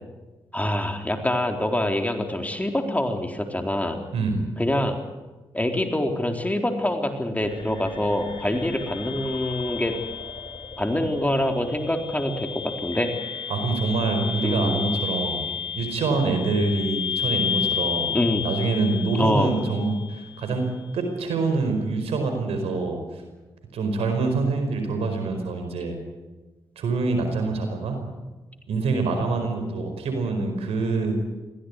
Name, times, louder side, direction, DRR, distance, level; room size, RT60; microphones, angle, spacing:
voice 1, 0.5-4.0 4.6-5.0 5.5-9.9 10.8-13.1 14.4-14.8 18.1-18.4 19.2-19.5, left 1 dB, 15° left, 5 dB, 4.1 m, -25 dB
voice 2, 4.1-4.4 13.5-15.4 15.7-18.1 18.4-20.6 20.9-23.0 23.7-26.0 26.8-28.0 28.7-31.2, right 3 dB, 85° right, 6 dB, 4.8 m, -25 dB
sound 1, 7.4-20.4, left 7 dB, 50° left, 5.6 m, -32 dB
22.5 x 16.5 x 9.7 m, 1.2 s
supercardioid pair, 45°, 10 cm